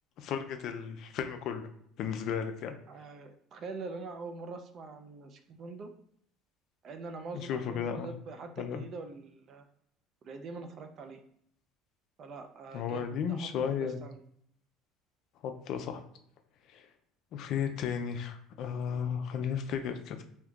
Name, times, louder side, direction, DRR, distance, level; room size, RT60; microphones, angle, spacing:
voice 1, 0.2-1.7 2.0-2.7 7.3-8.1 8.6-8.8 12.7-14.0 15.4-16.0 16.7-16.8 17.3-20.2, left 7 dB, 50° left, 6 dB, 0.4 m, -34 dB
voice 2, 2.9-5.9 6.8-9.6 10.2-11.2 12.2-14.2, right 4 dB, 35° right, 6 dB, 0.3 m, -44 dB
3.6 x 2.6 x 2.3 m, 0.67 s
cardioid pair, 150°, 0 cm